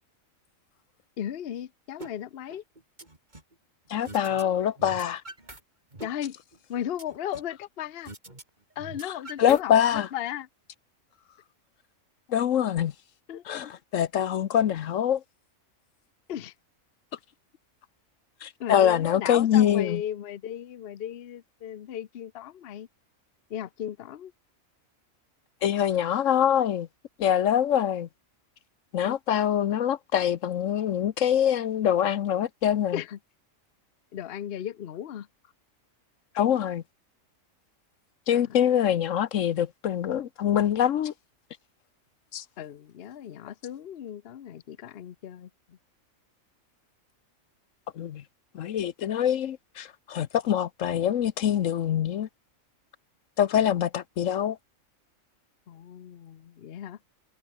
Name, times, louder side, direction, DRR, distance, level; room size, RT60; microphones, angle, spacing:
voice 1, 1.2-2.6 6.0-6.4 6.7-8.1 8.8-10.5 13.3-13.7 16.3-16.5 18.6-22.9 23.5-24.3 29.0-29.2 32.9-33.2 34.1-35.3 38.3-38.4 42.6-45.8 55.7-57.0, left 10 dB, 55° left, 0.9 m, -36 dB
sound 1, 2.0-2.1 2.5-3.5 4.0-4.4 4.7-5.6 5.9-7.6 8.0-8.4 8.7-10.0, right 2 dB, 35° right, 4.1 m, -44 dB
voice 2, 3.9-5.2 9.4-10.1 12.3-12.9 13.5-15.2 18.4-20.0 25.6-26.9 27.2-28.1 28.9-33.0 36.3-36.8 38.3-41.1 42.3-42.4 48.0-48.2 48.5-52.3 53.4-54.6, left 10 dB, 70° left, 1.1 m, -24 dB
omnidirectional pair, 1.4 m